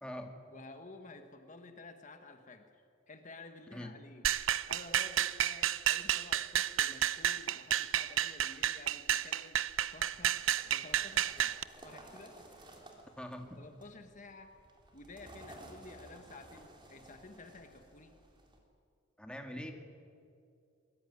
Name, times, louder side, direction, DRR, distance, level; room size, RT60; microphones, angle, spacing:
voice 1, 0.0-0.3 3.7-4.0 13.2-13.6 19.2-19.7, equal, 5° left, 3 dB, 2.0 m, -43 dB
voice 2, 0.5-4.3 4.7-9.6 9.9-12.7 13.6-14.6 14.9-18.2, left 2 dB, 40° left, 6 dB, 1.5 m, -52 dB
sound 1, 4.2-11.6, right 11 dB, 85° right, 0.7 m, -31 dB
sound 2, 9.7-18.6, right 1 dB, 25° right, 3.7 m, -56 dB
23.0 x 21.0 x 9.7 m, 2.5 s
head